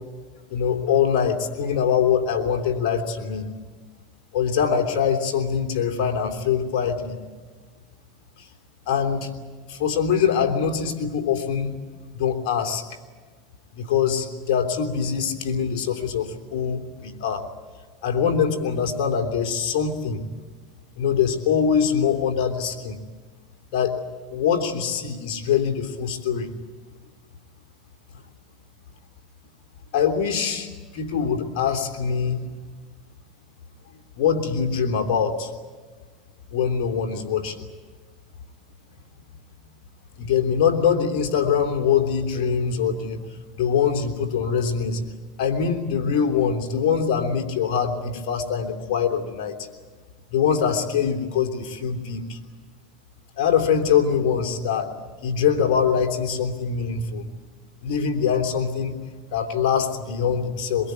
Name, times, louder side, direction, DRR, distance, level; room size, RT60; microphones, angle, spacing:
voice 1, 0.5-3.5 4.3-7.2 8.4-8.5 8.9-9.3 9.7-11.7 12.1-12.8 13.7-17.5 18.0-20.2 21.0-23.0 23.7-23.9 24.3-26.5 29.9-32.4 34.1-35.5 36.5-37.6 40.2-43.2 43.5-45.0 45.4-49.7 50.3-52.4 53.4-54.9 55.2-57.3 57.8-58.9 59.3-60.9, left 7 dB, 70° left, 3 dB, 3.2 m, -23 dB
23.0 x 22.5 x 9.4 m, 1.4 s
supercardioid pair, 100°, 0 cm